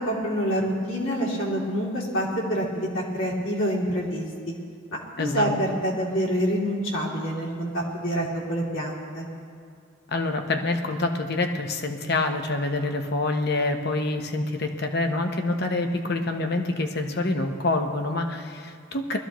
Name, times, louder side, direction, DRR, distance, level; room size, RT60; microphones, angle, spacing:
voice 1, 0.0-4.5 4.9-9.3, equal, 65° left, -4 dB, 2.9 m, -27 dB
voice 2, 5.2-5.5 10.1-19.2, left 2 dB, 50° left, 5 dB, 0.9 m, -26 dB
21.0 x 14.0 x 3.1 m, 2.2 s
head